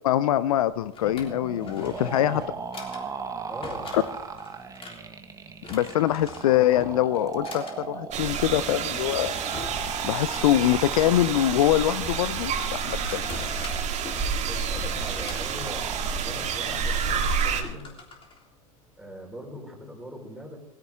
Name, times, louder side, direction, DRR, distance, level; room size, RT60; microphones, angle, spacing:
voice 1, 0.0-2.4 3.9-4.0 5.7-9.3 10.0-13.4, left 12 dB, 75° left, 17 dB, 0.6 m, -24 dB
Drawer open or close, 0.7-19.2, left 4 dB, 30° left, 3.5 m, -45 dB
sound 1, 1.0-17.0, right 5 dB, 20° right, 1.5 m, -38 dB
voice 2, 1.8-2.5 3.5-3.9 14.4-15.8 16.1-17.9 19.0-20.6, equal, ahead, 1 dB, 4.5 m, -41 dB
sound 2, 8.1-17.6, right 6 dB, 40° right, 2.2 m, -29 dB
18.0 x 15.5 x 3.6 m, 0.97 s
hypercardioid pair, 95°, 18 cm